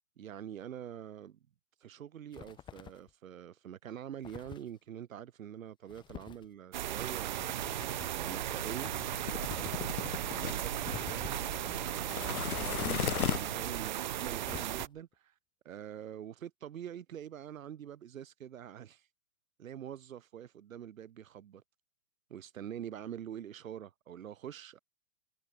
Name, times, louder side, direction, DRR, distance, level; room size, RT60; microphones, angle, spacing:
voice 1, 0.2-1.4 1.8-7.8 8.1-9.0 9.3-15.3 15.6-19.1 19.6-21.6 22.3-24.8, right 10 dB, 65° right, 7.6 m, -45 dB
sound 1, 2.3-3.1 4.2-4.7 5.9-6.5 7.3-8.2 9.4-10.0 10.8-11.6 12.8-13.5 14.4-15.1, left 9 dB, 10° left, 1.0 m, -48 dB
sound 2, 6.7-14.9, right 12 dB, 35° right, 0.5 m, -36 dB
sound 3, 8.2-13.8, left 10 dB, 80° left, 1.4 m, -38 dB
hypercardioid pair, 150°, 43 cm